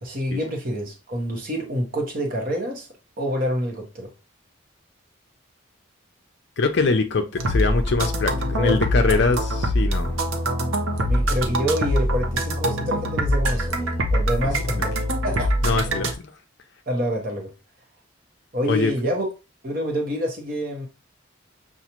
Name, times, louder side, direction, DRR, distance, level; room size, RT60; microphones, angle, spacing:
voice 1, 0.0-2.9 3.2-4.1 8.6-8.8 11.0-15.8 16.9-17.5 18.5-19.3 19.6-20.9, equal, 45° right, 1.0 m, -27 dB
voice 2, 6.6-10.1 15.6-16.1 18.7-18.9, left 3 dB, 55° left, 0.5 m, -23 dB
sound 1, 7.4-16.1, equal, 80° right, 0.8 m, -23 dB
6.8 x 2.4 x 2.9 m
head